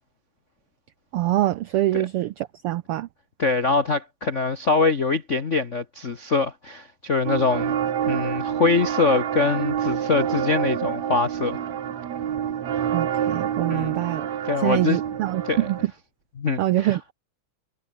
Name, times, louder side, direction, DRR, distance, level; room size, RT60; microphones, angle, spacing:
voice 1, 1.1-3.1 12.9-14.3 14.6-15.8 16.6-17.1, right 15 dB, 85° right, 1.2 m, -24 dB
voice 2, 3.4-7.7 8.1-11.6 13.7-14.0 14.4-15.0 15.4-15.7 16.4-17.0, left 4 dB, 60° left, 0.7 m, -23 dB
sound 1, 7.2-15.9, right 9 dB, 70° right, 3.1 m, -27 dB
omnidirectional pair, 3.3 m